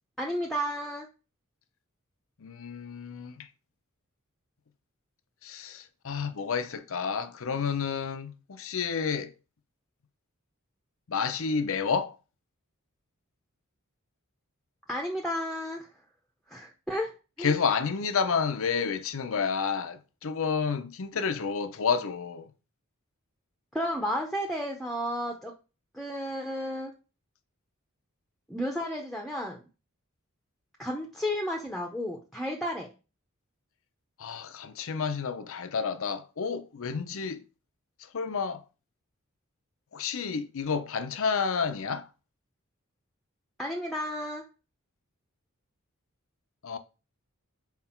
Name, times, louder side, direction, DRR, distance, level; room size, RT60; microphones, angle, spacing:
voice 1, 0.2-1.1 14.9-15.9 16.5-17.1 17.4-17.6 23.7-25.5 25.9-26.9 28.5-29.6 30.8-32.9 43.6-44.4, equal, ahead, 0.7 m, -32 dB
voice 2, 2.4-3.5 5.4-9.3 11.1-12.2 17.4-22.5 34.2-37.4 38.1-38.6 39.9-42.1 46.6-46.8, left 5 dB, 65° left, 0.7 m, -30 dB
5.9 x 4.7 x 4.4 m
head